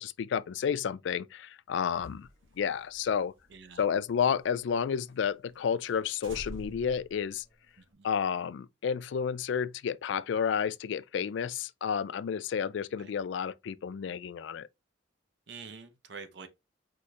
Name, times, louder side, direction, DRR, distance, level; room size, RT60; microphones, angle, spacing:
voice 1, 0.0-2.3 2.6-3.3 3.8-7.4 8.0-14.7, left 7 dB, 70° left, 0.3 m, -31 dB
sound 1, 1.9-4.7 5.0-5.1 5.5-5.6 5.8-6.0 6.2-7.9, equal, 80° right, 1.3 m, -48 dB
voice 2, 3.5-3.8 7.9-8.1 13.0-13.1 15.5-16.5, right 5 dB, 60° right, 0.7 m, -46 dB
4.9 x 4.3 x 2.4 m
head